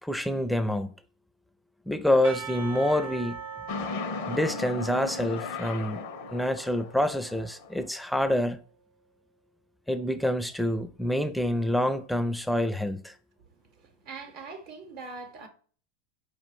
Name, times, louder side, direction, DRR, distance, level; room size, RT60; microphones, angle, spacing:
voice 1, 0.0-0.9 1.9-3.4 4.3-6.0 6.3-8.6 9.9-13.1, left 1 dB, ahead, 0.4 m, -27 dB
Percussion / Church bell, 2.2-7.5, right 6 dB, 90° right, 0.9 m, -41 dB
sound 1, 3.7-7.9, left 5 dB, 65° left, 0.5 m, -37 dB
voice 2, 13.8-15.5, right 4 dB, 60° right, 0.8 m, -42 dB
4.8 x 2.1 x 4.6 m
hypercardioid pair, 115°, 0 cm